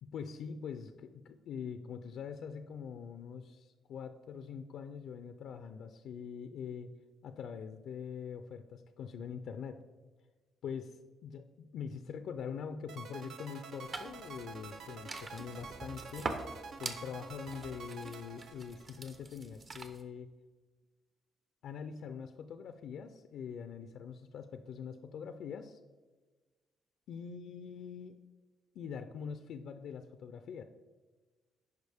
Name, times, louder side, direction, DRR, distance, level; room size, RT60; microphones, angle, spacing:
voice 1, 0.0-6.9 7.2-9.8 10.6-16.4 16.8-20.3 21.6-25.8 27.1-28.2 28.7-30.6, left 7 dB, 75° left, 9 dB, 0.4 m, -44 dB
sound 1, 12.9-19.2, right 5 dB, 75° right, 0.6 m, -48 dB
sound 2, 13.8-20.0, right 3 dB, 40° right, 0.8 m, -45 dB
10.5 x 4.8 x 3.5 m, 1.3 s
cardioid pair, 90°, 0 cm